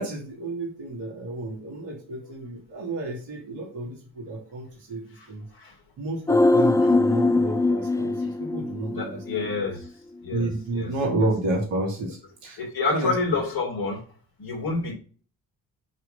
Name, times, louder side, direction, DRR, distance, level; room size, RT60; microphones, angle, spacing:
voice 1, 0.0-5.5 6.0-9.7 10.3-12.6 12.9-13.4, right 2 dB, 80° right, 2.6 m, -31 dB
sound 1, 6.3-9.6 9.8-9.9, left 2 dB, 10° left, 0.4 m, -22 dB
voice 2, 8.9-9.8 10.2-10.5 10.7-10.9 12.6-14.0 14.4-14.9, left 3 dB, 60° left, 3.4 m, -28 dB
8.0 x 3.1 x 5.6 m
hypercardioid pair, 45°, 41 cm